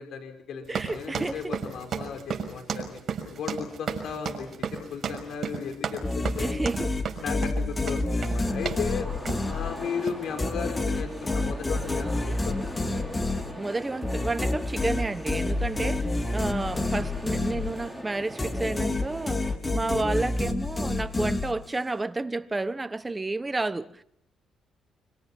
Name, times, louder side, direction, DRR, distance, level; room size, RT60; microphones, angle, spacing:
voice 1, 0.0-3.0 3.3-6.7 7.2-9.1 9.4-12.8, left 6 dB, 70° left, 5.7 m, -35 dB
voice 2, 0.7-1.4 6.4-7.0 13.6-24.0, right 2 dB, 20° right, 1.3 m, -31 dB
sound 1, 0.7-8.9 9.3-9.6 10.0-10.2, right 6 dB, 50° right, 6.1 m, -34 dB
sound 2, 6.0-10.0 10.4-18.0 18.4-21.9, left 2 dB, 25° left, 3.2 m, -29 dB
sound 3, 8.4-19.6, equal, ahead, 6.0 m, -41 dB
27.0 x 26.0 x 6.1 m
cardioid pair, 90°, 0 cm